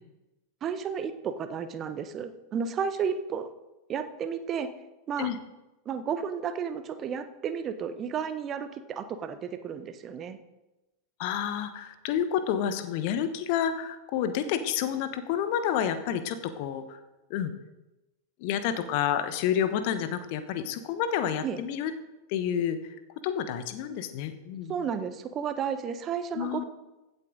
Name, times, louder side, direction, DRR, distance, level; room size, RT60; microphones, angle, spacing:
voice 1, 0.6-3.5 3.9-4.7 5.1-5.3 5.8-10.4 21.4-21.6 24.7-26.6, right 7 dB, 30° right, 10 dB, 0.9 m, -32 dB
voice 2, 11.2-17.0 17.3-17.5 18.4-21.9 22.3-22.8 23.2-24.9 26.3-26.6, left 9 dB, 45° left, 11 dB, 1.1 m, -29 dB
15.5 x 8.1 x 3.9 m, 1.0 s
figure-of-eight pair, 90°, 0 cm